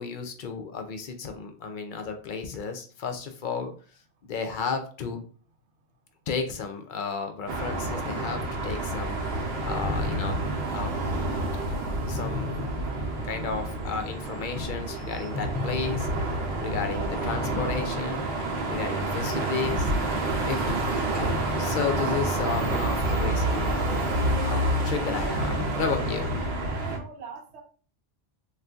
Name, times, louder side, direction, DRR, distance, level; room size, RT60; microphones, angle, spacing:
voice 1, 0.0-3.7 4.2-5.2 6.3-11.2 12.1-12.5 13.2-18.3 18.7-21.0 21.6-24.0 24.4-26.5, left 5 dB, 60° left, 6 dB, 0.6 m, -33 dB
sound 1, 7.5-27.0, right 1 dB, 65° right, 0.9 m, -28 dB
voice 2, 26.6-27.6, right 5 dB, 90° right, 2 dB, 0.9 m, -43 dB
2.6 x 2.4 x 3.4 m, 0.41 s
omnidirectional pair, 1.1 m